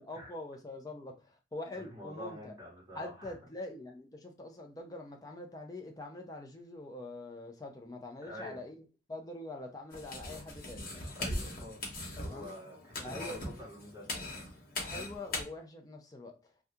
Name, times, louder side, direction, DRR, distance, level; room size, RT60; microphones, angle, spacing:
voice 1, 0.0-2.5 2.9-8.8 9.1-10.9 12.2-12.5 13.0-13.6 14.8-16.5, left 2 dB, 20° left, 0.4 m, -44 dB
voice 2, 1.7-3.3 8.3-8.6 11.2-11.9 12.2-14.1, left 1 dB, 20° right, 1.4 m, -47 dB
sound 1, 9.9-15.4, left 1 dB, 50° left, 1.1 m, -40 dB
2.7 x 2.3 x 3.5 m
head